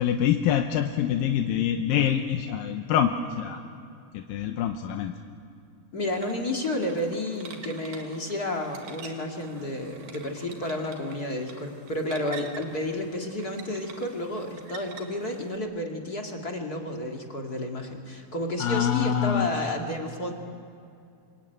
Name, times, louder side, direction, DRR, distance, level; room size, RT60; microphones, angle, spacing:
voice 1, 0.0-3.6 4.1-5.1 18.6-19.5, left 9 dB, 80° left, 5 dB, 2.7 m, -25 dB
voice 2, 5.9-20.3, left 1 dB, 30° left, 1 dB, 2.2 m, -31 dB
sound 1, 6.1-15.6, right 6 dB, 85° right, 3.7 m, -47 dB
27.5 x 24.0 x 9.2 m, 2.5 s
omnidirectional pair, 4.0 m